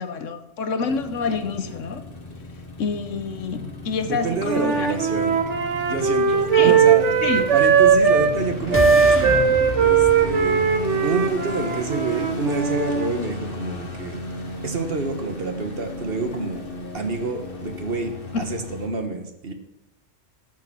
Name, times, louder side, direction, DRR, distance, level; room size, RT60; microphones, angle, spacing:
voice 1, 0.0-2.0 2.8-4.9 6.5-6.8 7.2-7.5 18.3-18.5, left 4 dB, 85° left, 9 dB, 1.3 m, -27 dB
sound 1, 0.8-18.9, left 1 dB, 45° left, 1.8 m, -34 dB
voice 2, 4.0-5.5 5.9-7.0 7.5-9.5 9.8-10.7 11.0-14.2 14.6-16.7 16.9-19.5, right 3 dB, 50° right, 6 dB, 1.5 m, -28 dB
Wind instrument woodwind instrument, 4.4-8.3 8.7-13.1, right 6 dB, 70° right, 1.4 m, -19 dB
sound 2, 7.7-11.8, left 2 dB, 20° left, 0.4 m, -32 dB
12.5 x 6.7 x 6.1 m, 0.86 s
omnidirectional pair, 1.3 m